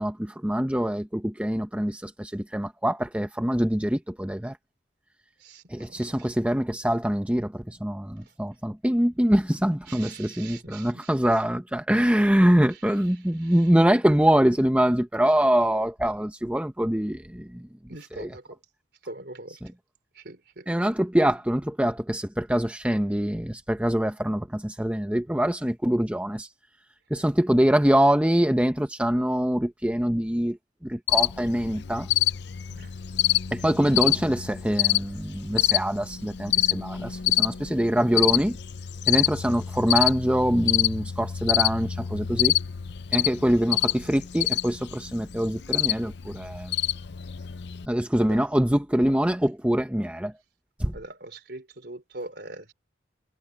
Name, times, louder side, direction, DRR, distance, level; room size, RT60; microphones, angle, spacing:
voice 1, 0.0-4.6 5.7-17.6 18.2-18.3 20.7-26.5 27.1-30.6 30.8-32.1 33.5-38.6 39.1-42.6 43.1-46.7 47.9-50.3 50.8-50.9, equal, 5° right, 0.7 m, -24 dB
voice 2, 5.4-6.3 8.2-8.3 9.9-11.1 12.7-13.7 17.9-18.6 19.0-19.6 20.1-20.7 32.7-32.9 48.2-48.4 50.9-52.7, right 2 dB, 55° right, 4.0 m, -43 dB
Cricket, 31.1-47.9, left 14 dB, 60° left, 0.6 m, -27 dB
head